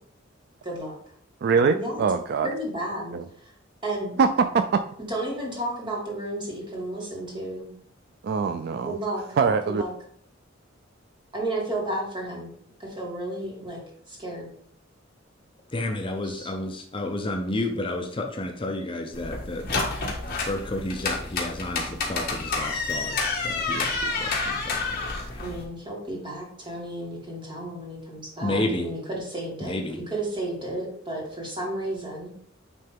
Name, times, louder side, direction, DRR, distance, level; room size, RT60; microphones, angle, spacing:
voice 1, 0.6-0.9 1.7-2.0 2.4-3.2 3.8-4.2 5.1-7.7 8.8-9.4 9.6-9.9 11.3-12.5 12.8-14.5 16.2-16.5 25.4-32.3, right 1 dB, 25° right, -2 dB, 2.0 m, -32 dB
voice 2, 1.4-2.5 3.1-3.2 4.2-4.8 8.2-8.9 9.4-9.8, right 5 dB, 55° right, 9 dB, 0.3 m, -23 dB
voice 3, 15.7-19.9 20.3-23.2 23.4-25.0 25.3-25.5 28.4-28.9 29.6-30.0, left 1 dB, 25° left, 3 dB, 0.6 m, -31 dB
sound 1, 19.1-25.6, left 3 dB, 50° left, 1.5 m, -29 dB
9.2 x 3.3 x 3.5 m, 0.62 s
head